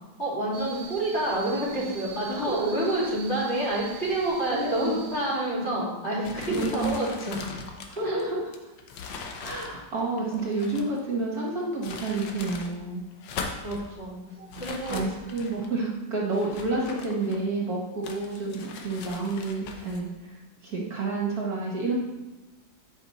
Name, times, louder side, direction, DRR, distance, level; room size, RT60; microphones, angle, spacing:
voice 1, 0.2-7.4 8.0-8.2 13.6-14.2 14.6-15.1, right 1 dB, 35° left, -7 dB, 3.2 m, -28 dB
sound 1, 0.5-5.5, right 7 dB, 80° right, 1.4 m, -44 dB
voice 2, 2.3-2.7 4.5-5.0 6.5-6.9 7.9-8.5 9.4-13.0 14.4-21.9, right 3 dB, 55° right, -3 dB, 1.7 m, -30 dB
sound 2, 6.2-11.0 11.6-12.7 13.1-13.9 14.5-15.7 16.3-17.6 18.0-20.0, left 5 dB, 80° left, 1.5 m, -40 dB
8.0 x 5.5 x 4.1 m, 1.1 s
omnidirectional pair, 2.0 m